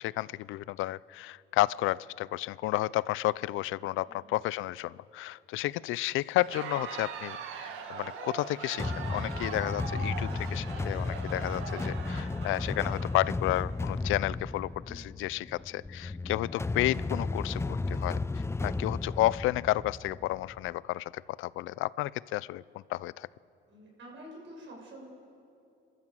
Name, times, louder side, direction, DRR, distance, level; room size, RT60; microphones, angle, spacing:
voice 1, 0.0-18.2 18.6-23.3, left 17 dB, 90° left, 21 dB, 0.4 m, -32 dB
voice 2, 4.1-4.4 14.8-15.0 23.7-25.1, equal, 70° right, -1 dB, 6.7 m, -49 dB
Crowd, 6.3-13.8, right 6 dB, 90° right, 1.7 m, -41 dB
sound 1, 8.8-20.7, left 3 dB, 15° left, 0.5 m, -34 dB
29.0 x 13.5 x 7.7 m, 2.7 s
cardioid pair, 90°, 20 cm